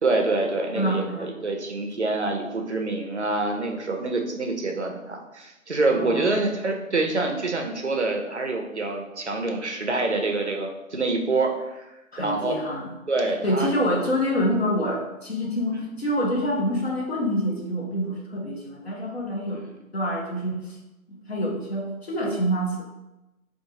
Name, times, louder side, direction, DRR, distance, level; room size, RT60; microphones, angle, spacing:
voice 1, 0.0-11.9 12.2-12.5 13.1-13.7, right 3 dB, 55° right, 3 dB, 0.5 m, -26 dB
voice 2, 0.7-1.4 5.9-6.4 12.1-13.0 13.4-20.8 21.1-22.8, equal, 45° left, -2 dB, 0.9 m, -27 dB
4.6 x 2.5 x 2.8 m, 0.98 s
figure-of-eight pair, 175°, 42 cm